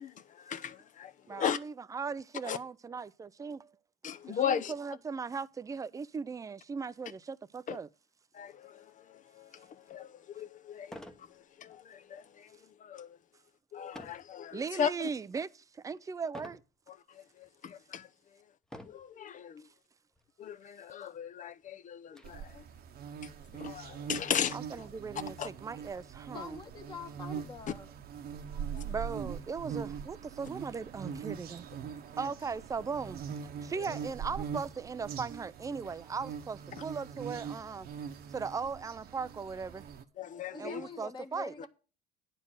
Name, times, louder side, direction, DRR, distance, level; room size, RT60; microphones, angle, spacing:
voice 1, 0.0-1.6 2.4-2.6 4.0-4.7 7.7-7.8 8.3-11.0 11.6-12.5 12.8-13.2 13.7-14.9 17.4-18.1 18.8-19.6 20.4-22.6 23.5-24.6 25.4-25.5 28.7-28.8 33.8-33.9 40.2-40.8, left 8 dB, 40° left, 0.7 m, -37 dB
voice 2, 1.3-3.7 4.3-7.9 14.5-16.6 24.5-26.6 28.5-31.7 32.2-33.2 33.6-37.9 38.3-39.8 40.6-41.5, right 5 dB, 15° right, 0.4 m, -38 dB
sound 1, 9.9-10.0 10.8-11.3 11.7-12.0 13.9-14.3 14.9-15.3 16.3-16.7 17.4-17.5 18.6-19.1 20.1-20.3 20.6-20.7 21.1-22.3, equal, 5° left, 0.9 m, -48 dB
sound 2, 22.2-40.0, right 7 dB, 50° right, 1.0 m, -42 dB
voice 3, 26.3-27.9 40.5-41.7, left 4 dB, 25° left, 1.3 m, -45 dB
9.8 x 4.5 x 7.4 m
cardioid pair, 120°, 20 cm